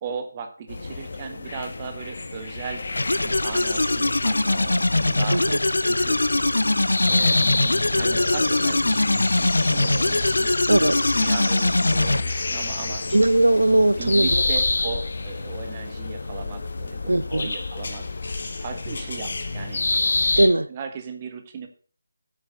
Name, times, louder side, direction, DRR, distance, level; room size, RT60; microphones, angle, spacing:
voice 1, 0.0-2.8 3.2-6.2 7.1-10.6 10.9-13.2 14.0-17.0 17.3-18.0 18.6-19.9 20.7-21.7, right 6 dB, 25° right, 6 dB, 1.5 m, -37 dB
sound 1, 0.7-20.5, left 3 dB, 50° left, 1.8 m, -29 dB
sound 2, 3.0-12.2, left 2 dB, 70° left, 0.7 m, -22 dB
voice 2, 10.7-11.1 13.1-14.4 17.1-17.5 20.4-20.7, right 1 dB, 70° right, 14 dB, 0.6 m, -19 dB
9.0 x 7.5 x 6.6 m, 0.44 s
figure-of-eight pair, 155°, 0 cm